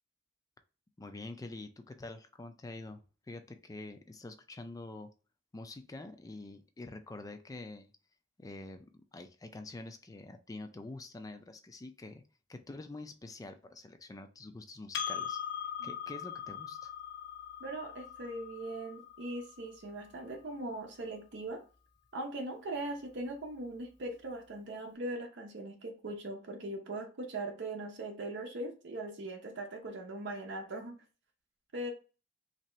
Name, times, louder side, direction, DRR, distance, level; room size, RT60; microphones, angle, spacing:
voice 1, 1.0-3.0 3.3-5.1 5.5-7.9 8.4-12.2 12.5-15.4 15.8-16.9, left 2 dB, 20° left, 0.3 m, -46 dB
Percussion, 14.9-19.8, left 8 dB, 60° left, 0.6 m, -41 dB
voice 2, 17.6-21.6 22.1-31.0 31.7-31.9, right 2 dB, 65° right, 0.7 m, -40 dB
3.3 x 2.8 x 3.0 m
head